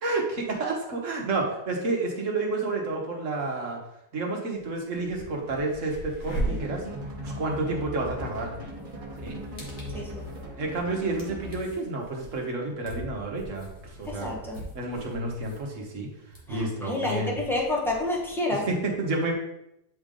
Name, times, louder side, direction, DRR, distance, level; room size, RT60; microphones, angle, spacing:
voice 1, 0.0-3.8 4.1-6.9 7.2-8.5 9.2-9.4 10.6-14.3 14.7-16.1 16.5-17.4 18.5-19.3, right 2 dB, 50° right, 0 dB, 1.4 m, -30 dB
sound 1, 4.5-4.6 5.0-18.3, right 2 dB, 45° left, 1.8 m, -40 dB
sound 2, 6.3-11.8, equal, 35° right, 1.1 m, -38 dB
voice 2, 9.9-10.3 14.1-14.6 16.5-18.7, left 2 dB, ahead, -2 dB, 0.9 m, -29 dB
8.1 x 3.4 x 3.7 m, 0.82 s
omnidirectional pair, 1.8 m